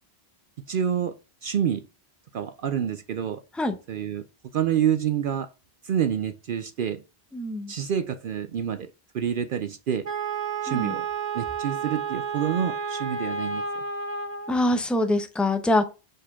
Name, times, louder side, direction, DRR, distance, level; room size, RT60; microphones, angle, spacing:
voice 1, 0.7-1.2 1.4-1.8 2.3-3.4 3.9-4.2 4.5-5.5 5.8-7.0 7.7-10.1 10.6-11.1 11.3-13.6, right 9 dB, 60° right, 0.6 m, -27 dB
voice 2, 7.3-7.7 10.7-10.9 14.5-15.9, left 1 dB, ahead, 0.7 m, -24 dB
Wind instrument woodwind instrument, 10.0-14.6, right 5 dB, 35° right, 1.2 m, -31 dB
5.1 x 4.2 x 5.6 m
omnidirectional pair, 1.1 m